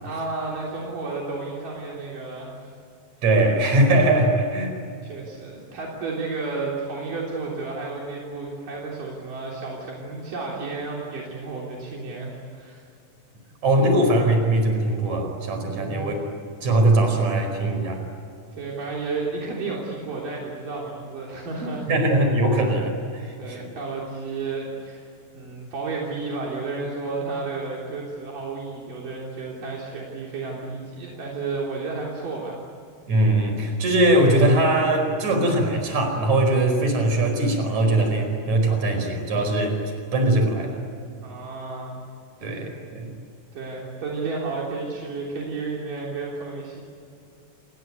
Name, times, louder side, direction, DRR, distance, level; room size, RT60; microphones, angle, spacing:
voice 1, 0.0-2.7 5.0-12.8 15.6-16.1 18.5-21.9 23.4-25.1 25.3-32.6 41.2-42.0 42.4-42.6 43.5-46.8, right 3 dB, 70° right, -3 dB, 5.1 m, -32 dB
voice 2, 3.2-4.7 13.6-16.2 16.6-18.0 21.9-23.7 33.1-39.8 40.1-40.8 42.4-43.1, right 1 dB, 55° right, 4 dB, 6.1 m, -21 dB
28.5 x 21.5 x 9.5 m, 2.5 s
omnidirectional pair, 3.9 m